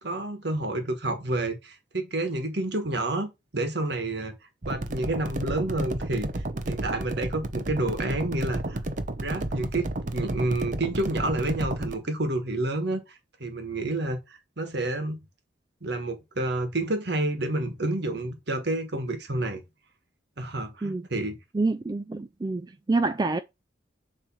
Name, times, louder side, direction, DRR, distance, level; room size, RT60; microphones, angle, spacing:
voice 1, 0.0-4.3 4.7-6.3 6.6-8.8 9.2-13.0 13.4-15.2 15.8-19.6 20.4-21.3, right 2 dB, 60° right, 1.5 m, -29 dB
sound 1, 4.6-12.0, right 1 dB, 40° right, 0.8 m, -32 dB
voice 2, 21.5-22.6 22.9-23.4, right 3 dB, 20° right, 0.3 m, -26 dB
7.1 x 3.3 x 6.2 m
head